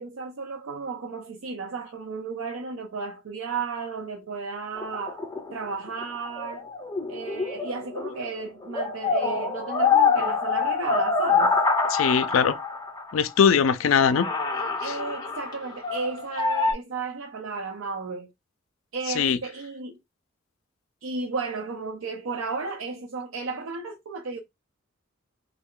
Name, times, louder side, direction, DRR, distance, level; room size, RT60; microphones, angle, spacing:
voice 1, 0.0-5.2 5.5-6.7 7.1-11.6 14.8-18.3 18.9-20.0 21.0-24.4, right 4 dB, 80° right, 0.5 m, -34 dB
sound 1, 4.8-8.3 8.6-13.1 13.7-13.8 14.0-16.7, left 4 dB, 20° left, 0.5 m, -25 dB
voice 2, 11.9-12.6 13.1-14.3 19.2-19.4, left 7 dB, 70° left, 0.4 m, -20 dB
3.5 x 2.3 x 3.7 m
head